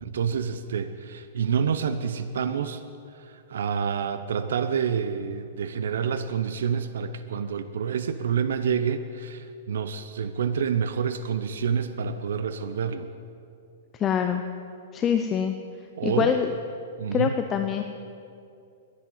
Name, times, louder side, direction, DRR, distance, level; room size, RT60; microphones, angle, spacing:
voice 1, 0.0-2.8 3.1-13.1 16.0-16.4 17.0-17.4, right 7 dB, 75° right, 10 dB, 0.7 m, -28 dB
voice 2, 13.9-14.4 14.9-15.5 16.0-16.5 17.1-17.8, left 8 dB, 15° left, 6 dB, 0.4 m, -24 dB
11.0 x 10.0 x 9.2 m, 2.5 s
hypercardioid pair, 175°, 0 cm